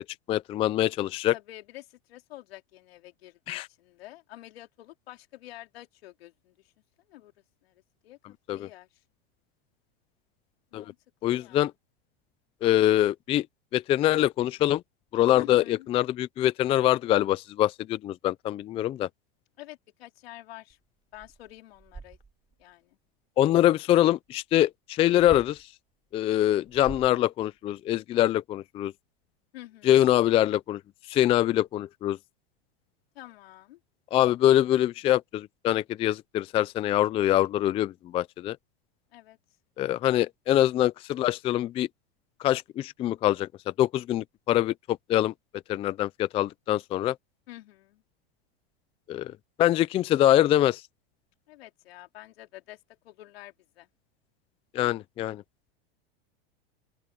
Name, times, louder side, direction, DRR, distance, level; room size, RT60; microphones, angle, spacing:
voice 1, 0.0-1.3 3.5-3.7 8.5-8.6 10.7-10.8 11.2-11.7 12.6-13.5 13.7-14.8 15.1-19.1 23.4-25.7 26.1-28.9 29.8-30.8 31.1-32.2 34.1-38.6 39.8-41.9 42.4-43.5 43.8-45.3 45.7-47.2 49.1-49.3 49.6-50.8 54.7-55.4, left 13 dB, 20° left, 0.4 m, -24 dB
voice 2, 1.3-6.5 7.1-7.3 7.6-9.0 10.7-11.0 11.3-11.7 15.3-15.9 19.6-20.8 21.1-22.2 22.6-23.0 29.5-30.0 33.2-33.8 39.1-39.4 47.5-48.0 51.5-53.9, left 16 dB, 75° left, 3.6 m, -48 dB
sound 1, 20.7-20.8 21.1-22.6 25.2-25.6 26.5-27.7, right 5 dB, 15° right, 2.6 m, -45 dB
open air
supercardioid pair, 135°, 31 cm